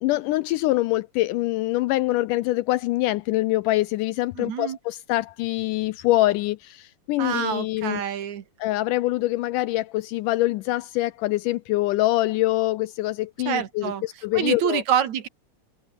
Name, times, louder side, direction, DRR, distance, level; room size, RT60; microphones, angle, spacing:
voice 1, 0.0-8.0 8.6-14.8, left 17 dB, 80° left, 2.0 m, -24 dB
voice 2, 4.4-4.8 7.2-8.4 13.5-14.0 14.3-15.3, right 9 dB, 60° right, 2.6 m, -26 dB
omnidirectional pair, 4.1 m